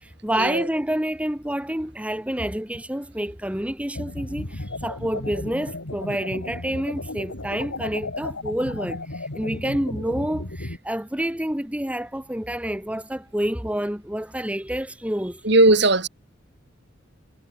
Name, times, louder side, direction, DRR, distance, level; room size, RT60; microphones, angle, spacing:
voice 1, 0.0-15.4, right 1 dB, 5° right, 1.4 m, -28 dB
sound 1, 3.9-10.8, left 2 dB, 85° left, 2.8 m, -34 dB
voice 2, 15.4-16.1, right 2 dB, 60° right, 3.2 m, -17 dB
head